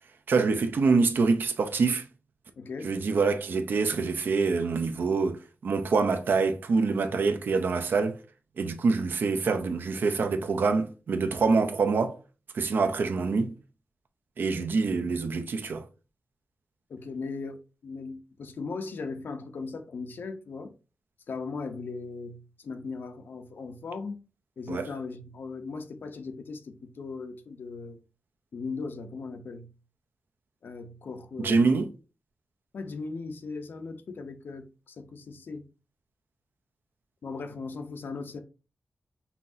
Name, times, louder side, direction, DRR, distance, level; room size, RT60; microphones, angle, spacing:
voice 1, 0.3-2.0 2.8-8.2 8.6-12.2 12.5-13.5 14.4-15.8 24.7-24.8 31.4-31.9, right 4 dB, 65° right, 0.6 m, -25 dB
voice 2, 2.6-2.9 14.5-14.8 16.9-20.7 21.3-24.2 24.6-28.0 28.5-29.7 30.6-31.8 32.7-35.6 37.2-38.4, left 4 dB, 70° left, 0.7 m, -38 dB
5.7 x 2.8 x 2.6 m
wide cardioid pair, 170°, 4 cm